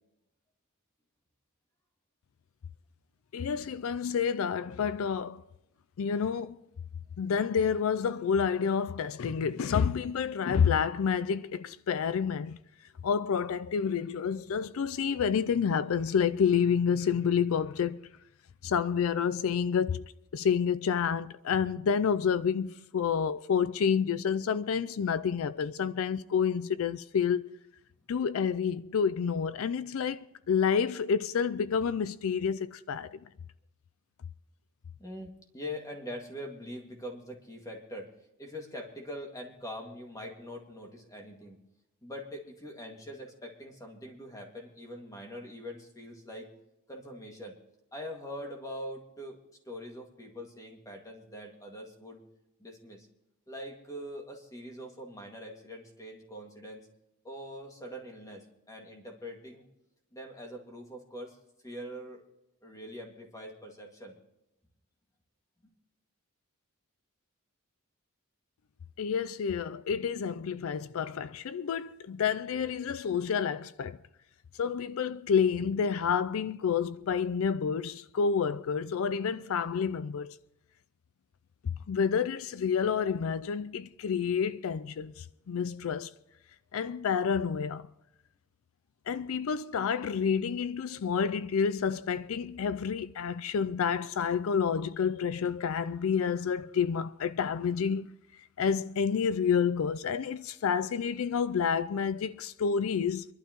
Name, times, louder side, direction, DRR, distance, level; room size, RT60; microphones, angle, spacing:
voice 1, 3.3-5.4 6.0-6.6 7.2-12.6 13.0-18.1 18.6-27.6 28.1-33.2 69.0-74.0 74.6-80.4 81.6-86.1 86.7-87.9 89.1-98.2 98.6-103.3, left 6 dB, 70° left, 0.4 m, -29 dB
voice 2, 35.0-38.1 38.4-41.6 42.0-46.5 46.9-47.6 47.9-49.4 49.7-52.2 52.6-53.1 53.5-56.9 57.2-59.6 60.1-61.4 61.6-62.2 62.6-64.2, equal, 15° left, 2.0 m, -43 dB
25.0 x 12.0 x 3.0 m
head